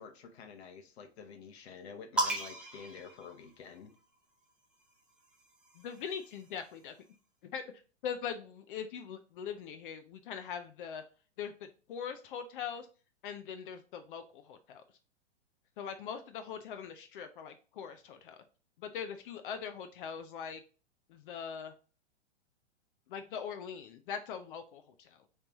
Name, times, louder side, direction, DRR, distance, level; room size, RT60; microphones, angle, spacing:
voice 1, 0.0-3.9, left 6 dB, 60° left, 1.1 m, -49 dB
sound 1, 2.2-4.0 5.1-6.7, right 1 dB, 5° right, 0.3 m, -37 dB
voice 2, 5.8-6.9 7.4-7.6 8.0-11.0 11.4-12.9 13.2-14.8 15.8-18.4 18.8-20.6 21.1-21.7 23.1-25.2, left 7 dB, 45° left, 0.6 m, -41 dB
5.0 x 3.2 x 2.9 m
hypercardioid pair, 125°, 35 cm